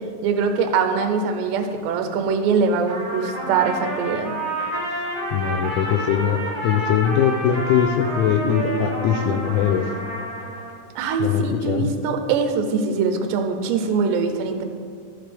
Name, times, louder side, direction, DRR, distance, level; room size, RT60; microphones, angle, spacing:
voice 1, 0.2-4.3 11.0-14.6, right 5 dB, 80° right, 5 dB, 2.6 m, -22 dB
Trumpet, 2.9-10.7, right 1 dB, 45° right, 1.7 m, -29 dB
voice 2, 5.3-9.9 11.2-12.0, left 8 dB, 85° left, 4 dB, 2.8 m, -21 dB
13.0 x 7.2 x 3.4 m, 2.2 s
omnidirectional pair, 5.7 m